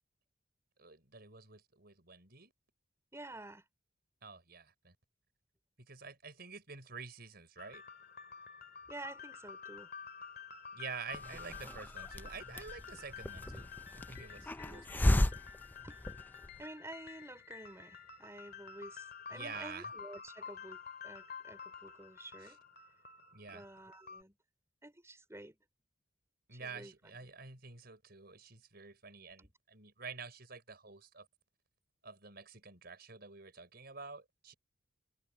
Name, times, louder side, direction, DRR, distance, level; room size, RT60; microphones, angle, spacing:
voice 1, 0.8-2.5 4.2-5.0 5.8-7.8 10.7-15.1 19.3-19.9 22.4-22.6 23.3-23.7 26.5-31.3 32.0-34.5, right 5 dB, 55° right, 5.4 m, -49 dB
voice 2, 3.1-3.6 8.9-9.9 15.8-16.0 16.6-22.6 23.5-24.4 24.8-25.6 26.5-26.9 29.4-29.5, right 1 dB, 15° right, 4.6 m, -50 dB
sound 1, 7.6-24.2, left 6 dB, 50° left, 2.5 m, -50 dB
Hiss, 11.1-16.6, left 1 dB, 10° left, 0.4 m, -35 dB
head